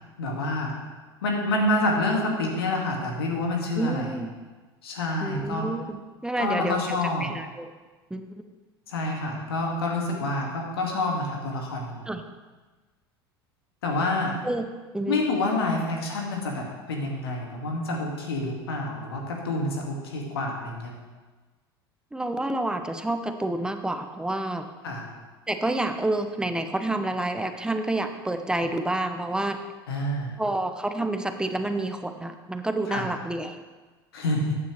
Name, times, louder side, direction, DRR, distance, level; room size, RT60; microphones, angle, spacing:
voice 1, 0.2-0.7 1.2-4.2 4.8-5.7 6.4-7.3 8.9-12.1 13.8-14.4 15.1-20.9 24.8-25.1 29.9-30.4 32.9-33.1 34.1-34.6, left 2 dB, 70° left, 0 dB, 2.2 m, -28 dB
voice 2, 3.8-4.3 5.2-7.7 8.1-8.4 12.1-12.2 14.4-14.6 14.9-15.2 22.1-24.6 25.5-29.6 30.4-33.6, right 2 dB, 5° right, 7 dB, 0.9 m, -29 dB
14.5 x 9.5 x 3.3 m, 1.3 s
figure-of-eight pair, 75°, 13 cm